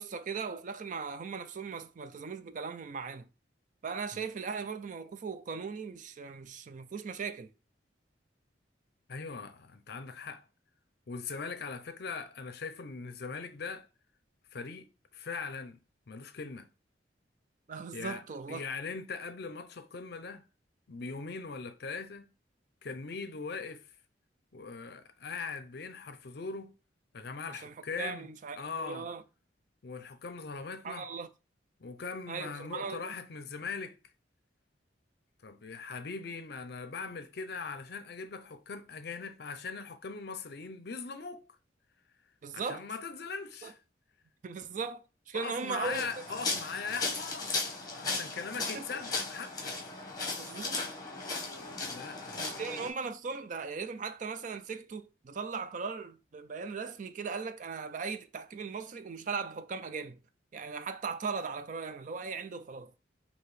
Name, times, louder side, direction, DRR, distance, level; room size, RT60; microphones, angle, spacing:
voice 1, 0.0-3.3 3.8-7.5 17.7-18.6 27.5-29.2 30.8-31.3 32.3-33.1 42.4-42.9 43.6-43.7 44.4-46.1 48.7-48.9 50.4-50.8 52.4-60.2 60.5-62.9, right 5 dB, 45° right, 0.4 m, -38 dB
voice 2, 9.1-10.4 11.1-13.9 14.5-15.8 16.1-16.7 17.9-20.4 20.9-22.3 22.8-23.9 24.5-26.7 27.1-28.3 28.5-29.1 29.8-31.1 31.8-34.0 35.4-41.5 42.5-43.8 45.3-47.6 47.9-49.8 51.8-52.6, left 4 dB, 60° left, 0.5 m, -40 dB
sound 1, 45.8-52.9, left 3 dB, 20° left, 1.0 m, -36 dB
4.6 x 2.8 x 3.2 m
head